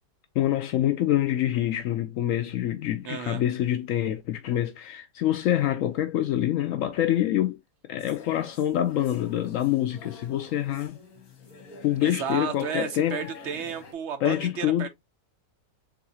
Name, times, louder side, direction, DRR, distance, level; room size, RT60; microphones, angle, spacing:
voice 1, 0.4-7.6 7.9-11.0 11.8-13.2 14.2-14.9, left 12 dB, 80° left, 0.7 m, -26 dB
voice 2, 3.0-3.4 12.0-14.9, right 7 dB, 90° right, 0.6 m, -33 dB
sound 1, 8.0-13.9, left 4 dB, 55° left, 1.7 m, -49 dB
4.0 x 3.7 x 2.7 m
omnidirectional pair, 1.9 m